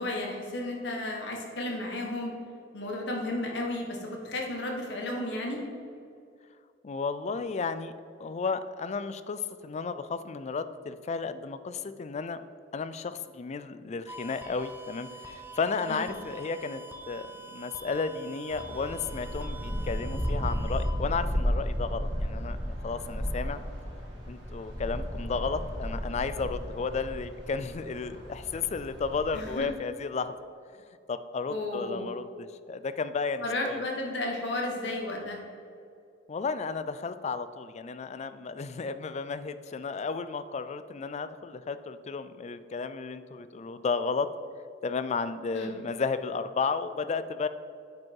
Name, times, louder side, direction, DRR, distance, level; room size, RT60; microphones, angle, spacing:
voice 1, 0.0-2.3 2.7-5.6 15.9-16.1 29.3-29.7 31.5-32.1 33.4-35.4 45.5-45.7, left 1 dB, 65° left, 0 dB, 1.5 m, -33 dB
voice 2, 6.8-7.9 8.2-12.4 12.7-23.6 24.3-30.4 31.1-33.8 36.3-44.3 44.8-47.5, left 4 dB, 35° left, 12 dB, 0.4 m, -33 dB
sound 1, 14.1-20.9, right 3 dB, 10° right, 0.8 m, -46 dB
sound 2, 18.5-29.6, equal, 75° right, 2.0 m, -34 dB
9.3 x 5.2 x 4.7 m, 2.5 s
head